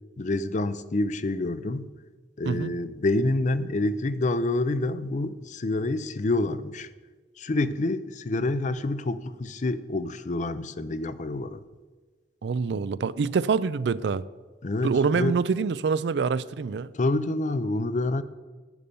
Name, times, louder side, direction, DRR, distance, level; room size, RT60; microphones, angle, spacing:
voice 1, 0.2-1.9 2.4-6.9 7.4-11.6 14.6-15.4 16.9-18.2, left 2 dB, 45° left, 0.5 m, -27 dB
voice 2, 12.4-14.2 14.8-16.9, right 5 dB, 75° right, 0.4 m, -25 dB
11.0 x 8.9 x 5.3 m
head